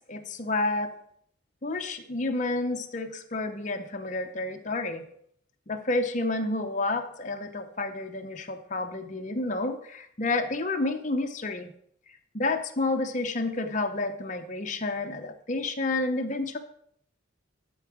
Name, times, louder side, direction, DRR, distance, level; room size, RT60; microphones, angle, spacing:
voice 1, 0.1-0.9 1.6-5.0 5.7-11.7 12.3-16.6, left 2 dB, 35° left, 5 dB, 0.7 m, -30 dB
11.5 x 4.6 x 4.8 m, 0.67 s
head